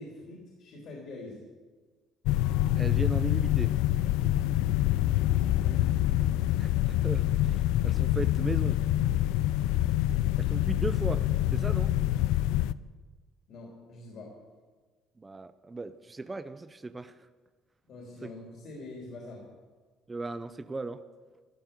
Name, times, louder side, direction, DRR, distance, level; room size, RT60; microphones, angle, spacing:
voice 1, 0.0-1.4 5.5-6.0 13.5-14.3 17.9-19.4, left 2 dB, 60° left, -2 dB, 3.3 m, -45 dB
sound 1, 2.3-12.7, left 14 dB, 90° left, 0.4 m, -26 dB
voice 2, 2.8-3.7 6.6-8.8 10.4-11.2 11.5-11.9 15.2-17.2 18.2-18.3 20.1-21.0, right 3 dB, 20° right, 12 dB, 0.6 m, -36 dB
13.0 x 12.5 x 6.8 m, 1.4 s
cardioid pair, 115°, 0 cm